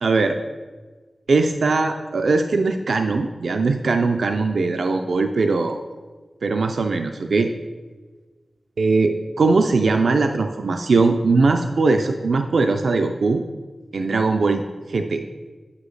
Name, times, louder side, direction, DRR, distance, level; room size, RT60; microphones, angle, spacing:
voice 1, 0.0-0.4 1.3-5.8 6.4-7.5 8.8-13.4 13.9-14.6 14.9-15.2, right 3 dB, 85° right, 5 dB, 0.3 m, -20 dB
8.2 x 5.0 x 3.2 m, 1.4 s
wide cardioid pair, 75°, 0 cm